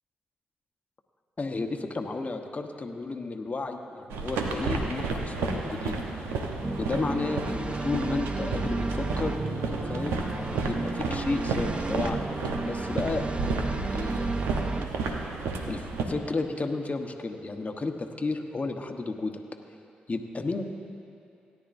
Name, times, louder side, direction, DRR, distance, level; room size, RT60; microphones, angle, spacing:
voice 1, 1.4-6.0 6.8-9.4 9.8-10.2 10.6-12.3 12.6-14.3 15.7-15.8 16.1-19.4 20.1-20.6, left 3 dB, 40° left, 4 dB, 1.1 m, -32 dB
sound 1, 4.1-16.0, right 4 dB, 85° right, 0.8 m, -32 dB
sound 2, 4.7-11.7, left 3 dB, 75° left, 1.0 m, -45 dB
sound 3, 6.6-14.9, right 3 dB, 30° right, 0.6 m, -33 dB
17.5 x 9.9 x 2.6 m, 2.6 s
hypercardioid pair, 40°, 4 cm